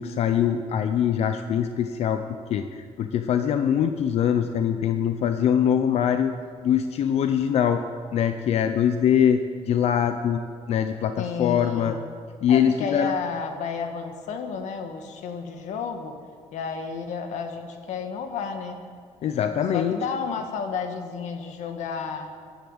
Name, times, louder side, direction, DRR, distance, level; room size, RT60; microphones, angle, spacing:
voice 1, 0.0-2.2 2.5-6.3 6.6-7.8 8.1-10.4 10.7-11.9 12.4-13.1 19.2-20.0, left 9 dB, 60° left, 8 dB, 0.7 m, -23 dB
voice 2, 11.2-12.1 12.5-16.2 16.5-18.8 19.7-22.3, left 5 dB, 90° left, 6 dB, 1.9 m, -31 dB
16.5 x 11.0 x 8.0 m, 2.1 s
cardioid pair, 165°, 12 cm